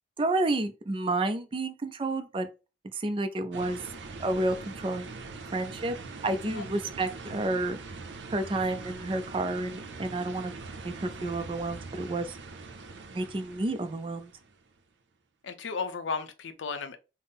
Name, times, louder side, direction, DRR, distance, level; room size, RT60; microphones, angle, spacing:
voice 1, 0.2-2.5 2.9-3.8 4.2-5.1 5.5-6.0 6.2-7.8 8.3-10.5 10.8-12.3 13.1-14.3, right 2 dB, 25° right, 0.3 m, -30 dB
sound 1, 3.5-14.7, right 4 dB, 75° right, 0.5 m, -43 dB
voice 2, 15.4-17.0, left 5 dB, 85° left, 0.5 m, -34 dB
3.6 x 2.0 x 4.0 m
head